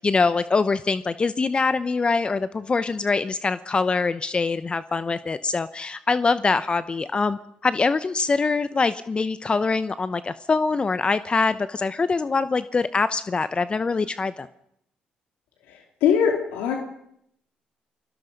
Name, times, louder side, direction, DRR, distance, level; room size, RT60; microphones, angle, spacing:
voice 1, 0.0-14.5, left 4 dB, 30° left, 14 dB, 0.8 m, -24 dB
voice 2, 16.0-16.8, left 7 dB, 90° left, 3 dB, 2.6 m, -20 dB
29.0 x 18.5 x 5.3 m, 0.75 s
supercardioid pair, 75°, 3 cm